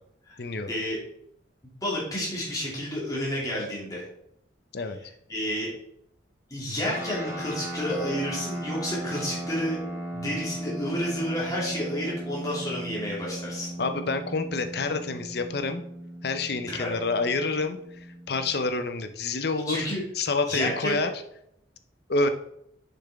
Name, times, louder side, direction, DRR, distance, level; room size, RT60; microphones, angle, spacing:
voice 1, 0.4-0.7 4.7-5.0 13.8-15.8 16.2-19.9 20.2-21.1 22.1-22.3, left 3 dB, 55° left, 8 dB, 0.6 m, -28 dB
voice 2, 1.8-4.0 5.3-5.7 6.5-9.8 10.1-13.7 16.7-16.9 19.7-20.0 20.5-21.1, equal, 20° left, -5 dB, 2.5 m, -30 dB
sound 1, 6.8-18.7, right 1 dB, 15° right, 1.2 m, -37 dB
6.8 x 5.9 x 3.5 m, 0.74 s
head